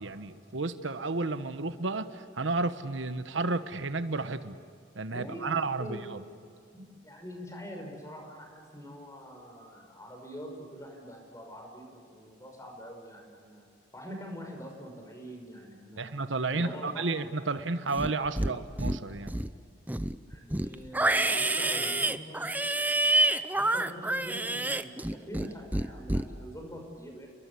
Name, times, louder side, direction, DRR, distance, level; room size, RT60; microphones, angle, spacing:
voice 1, 0.0-4.6 5.0-6.2 16.0-19.3, right 3 dB, 85° right, 10 dB, 1.1 m, -32 dB
voice 2, 5.1-5.5 5.8-6.0 6.7-13.7 13.9-16.1 16.5-17.0 18.4-18.5 20.3-22.5 23.5-27.3, equal, 15° left, 2 dB, 5.9 m, -44 dB
Livestock farm animals working animals, 17.9-18.5 18.8-19.5 19.9-25.5 25.7-26.2, right 2 dB, 10° right, 0.6 m, -28 dB
29.5 x 22.5 x 8.4 m, 2.2 s
head